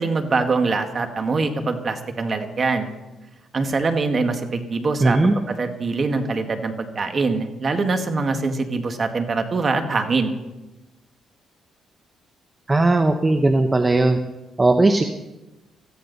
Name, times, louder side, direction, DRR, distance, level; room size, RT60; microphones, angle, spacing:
voice 1, 0.0-2.9 3.5-5.2 5.5-10.3, right 3 dB, 40° right, 6 dB, 1.8 m, -23 dB
voice 2, 5.0-5.3 12.7-14.2 14.6-15.0, right 2 dB, 20° right, 6 dB, 0.9 m, -17 dB
17.5 x 14.0 x 4.1 m, 1.0 s
cardioid pair, 90°, 0 cm